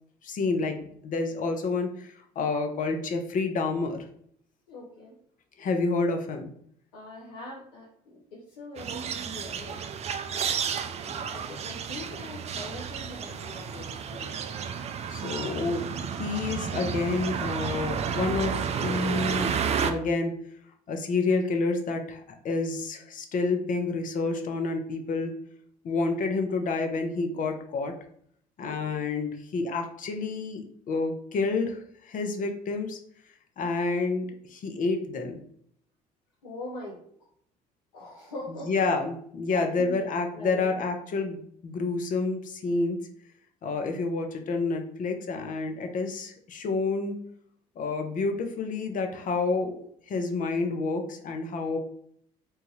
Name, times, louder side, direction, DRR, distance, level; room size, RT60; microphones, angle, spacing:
voice 1, 0.2-4.0 5.6-6.5 15.1-15.9 16.2-20.4 20.9-25.3 25.8-27.9 28.6-33.0 33.6-35.4 38.6-43.0 43.6-47.2 47.8-51.8, left 3 dB, 45° left, 5 dB, 0.6 m, -29 dB
voice 2, 4.7-5.1 6.9-9.8 11.0-14.4 15.8-15.9 36.4-37.0 37.9-38.9 39.5-40.1 40.3-40.8 43.8-44.0, left 1 dB, 85° left, -5 dB, 0.7 m, -42 dB
sound 1, 8.8-19.9, right 7 dB, 35° right, 0.3 m, -31 dB
3.0 x 2.2 x 3.0 m, 0.66 s
hypercardioid pair, 55°, 19 cm